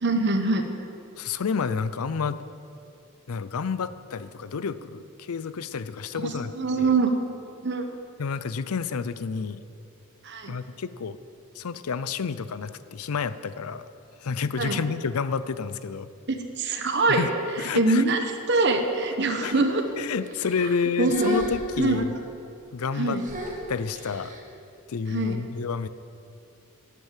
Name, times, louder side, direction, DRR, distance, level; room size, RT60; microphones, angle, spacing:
voice 1, 0.0-0.6 6.1-7.1 7.6-7.8 10.2-10.5 14.6-14.8 16.3-17.3 17.7-19.8 21.0-21.3 21.8-22.0 23.0-23.3 25.1-25.4, right 3 dB, 50° right, 5 dB, 1.1 m, -24 dB
voice 2, 1.2-2.4 3.3-6.5 6.8-6.9 8.2-9.6 10.5-11.2 11.6-13.9 14.2-16.1 17.1-17.3 17.6-18.0 19.4-19.5 20.0-22.1 22.7-23.2 23.7-24.4 24.9-25.9, left 5 dB, 85° left, 14 dB, 0.5 m, -29 dB
sound 1, 19.4-19.9 20.3-20.7 21.0-22.2 23.2-24.4, equal, 35° right, 1.5 m, -33 dB
12.0 x 9.1 x 7.4 m, 2.6 s
head